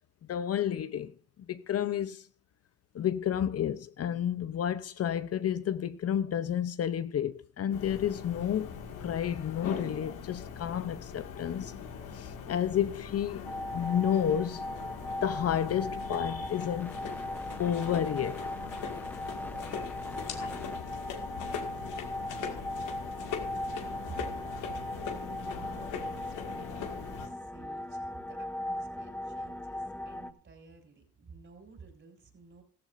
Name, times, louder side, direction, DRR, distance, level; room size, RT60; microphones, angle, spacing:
voice 1, 0.3-1.1 1.5-2.3 2.9-8.7 9.0-11.7 12.1-14.7 15.2-17.0 17.6-18.5, left 9 dB, 55° left, 0.7 m, -31 dB
sound 1, 7.7-27.3, left 7 dB, 85° left, 2.1 m, -41 dB
sound 2, 13.5-30.3, left 1 dB, 5° left, 0.8 m, -38 dB
voice 2, 24.1-32.6, right 5 dB, 40° right, 4.4 m, -51 dB
14.5 x 14.5 x 2.6 m
cardioid pair, 90°, 30 cm